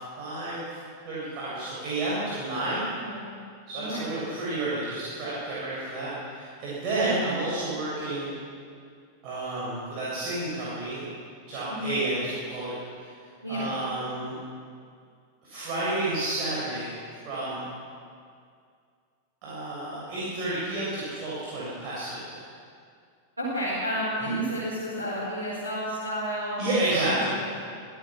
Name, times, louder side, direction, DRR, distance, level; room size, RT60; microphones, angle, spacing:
voice 1, 0.2-0.6 1.0-2.8 3.7-8.3 9.2-11.1 11.5-13.1 13.5-14.3 15.4-16.9 17.2-17.6 19.4-22.4 24.2-24.4 26.6-27.4, right 2 dB, 40° right, -8 dB, 7.2 m, -30 dB
voice 2, 23.4-27.4, equal, 80° right, -7 dB, 5.2 m, -31 dB
26.5 x 16.0 x 6.2 m, 2.2 s
figure-of-eight pair, 90°, 0 cm